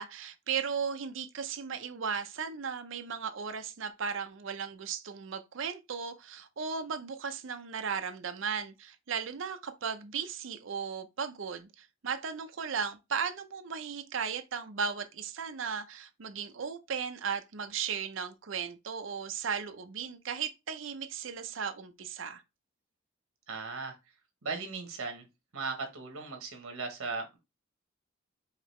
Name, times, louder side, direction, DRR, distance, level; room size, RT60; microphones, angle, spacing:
voice 1, 0.0-22.4, right 6 dB, 65° right, 0.6 m, -36 dB
voice 2, 23.5-24.0 24.4-25.2 25.5-27.4, right 4 dB, 85° right, 1.1 m, -37 dB
4.9 x 2.8 x 3.1 m
head